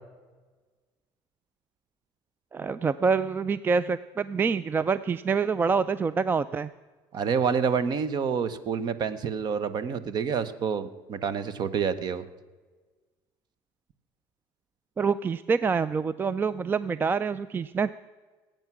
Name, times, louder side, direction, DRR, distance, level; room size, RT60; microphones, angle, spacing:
voice 1, 2.5-6.7 15.0-17.9, right 5 dB, 20° right, 16 dB, 0.3 m, -26 dB
voice 2, 7.1-12.2, right 6 dB, 45° right, 14 dB, 1.1 m, -28 dB
20.0 x 8.9 x 6.0 m, 1.3 s
cardioid pair, 115°, 10 cm